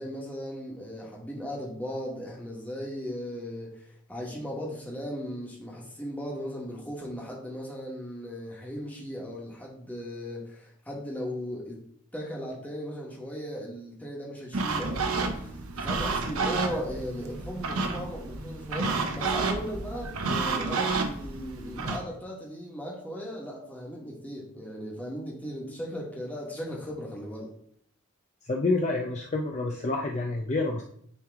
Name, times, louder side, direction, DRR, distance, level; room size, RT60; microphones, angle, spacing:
voice 1, 0.0-11.8 12.1-27.5, equal, 5° left, -3 dB, 1.3 m, -37 dB
sound 1, 14.5-22.0, right 4 dB, 80° right, 0.8 m, -30 dB
voice 2, 28.4-30.8, left 2 dB, 30° left, 1 dB, 0.4 m, -28 dB
9.3 x 3.2 x 3.5 m, 0.67 s
head